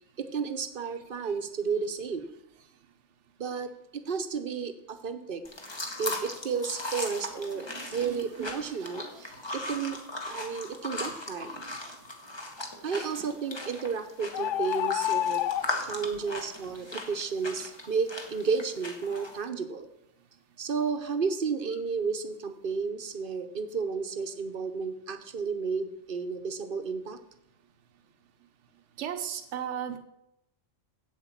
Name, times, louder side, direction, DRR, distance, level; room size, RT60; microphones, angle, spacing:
voice 1, 0.2-2.3 3.4-5.4 6.0-7.7 7.9-9.0 9.5-10.0 10.2-11.5 12.8-15.4 15.8-19.9 20.6-27.2, right 5 dB, 50° right, 9 dB, 1.1 m, -32 dB
sound 1, 5.4-19.4, left 2 dB, 20° left, 1.3 m, -38 dB
voice 2, 7.5-8.7 9.1-9.4 11.5-11.8 15.6-16.1 16.8-17.0 29.0-30.0, right 9 dB, 70° right, 6 dB, 1.2 m, -39 dB
sound 2, 14.3-15.7, left 12 dB, 80° left, 0.9 m, -28 dB
8.4 x 8.1 x 7.3 m, 0.82 s
omnidirectional pair, 1.3 m